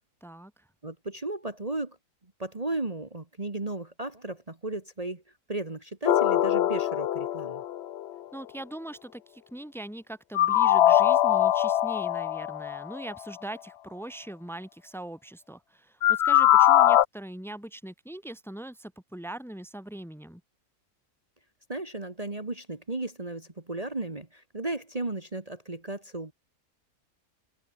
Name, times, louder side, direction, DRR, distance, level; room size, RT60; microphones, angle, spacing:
voice 1, 0.2-0.6 8.3-20.4, right 1 dB, ahead, 2.2 m, -41 dB
voice 2, 0.8-2.0 2.4-5.2 5.5-7.6 21.7-26.3, right 2 dB, 25° right, 2.0 m, -35 dB
sound 1, 6.1-8.1 10.3-13.0 16.0-17.0, left 12 dB, 60° left, 0.7 m, -22 dB
omnidirectional pair, 1.5 m